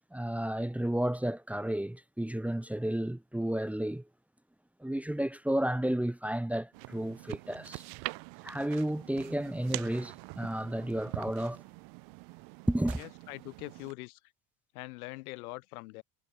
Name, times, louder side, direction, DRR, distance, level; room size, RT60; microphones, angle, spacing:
voice 1, 0.1-4.0 4.8-7.8 8.4-11.6 12.7-13.0, right 1 dB, 5° right, 2.0 m, -32 dB
sound 1, 6.7-13.9, right 34 dB, 70° right, 5.2 m, -44 dB
voice 2, 13.0-14.2 14.7-16.0, left 23 dB, 90° left, 7.4 m, -43 dB
cardioid pair, 140°, 43 cm